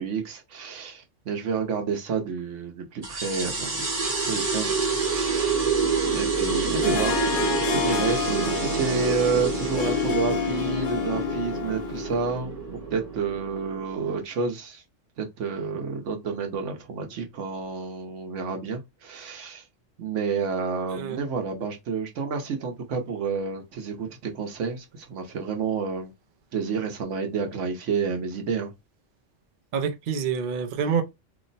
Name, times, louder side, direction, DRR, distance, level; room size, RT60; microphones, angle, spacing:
voice 1, 0.0-5.7 6.0-12.6 12.9-14.8 15.2-19.6 20.0-26.1 26.5-28.7, right 5 dB, 80° right, 1.2 m, -30 dB
sound 1, 3.0-14.1, right 4 dB, 35° right, 0.9 m, -27 dB
Harp, 6.8-12.3, left 8 dB, 60° left, 0.5 m, -29 dB
voice 2, 29.7-31.0, right 6 dB, 55° right, 0.6 m, -27 dB
3.0 x 2.0 x 4.0 m
omnidirectional pair, 1.3 m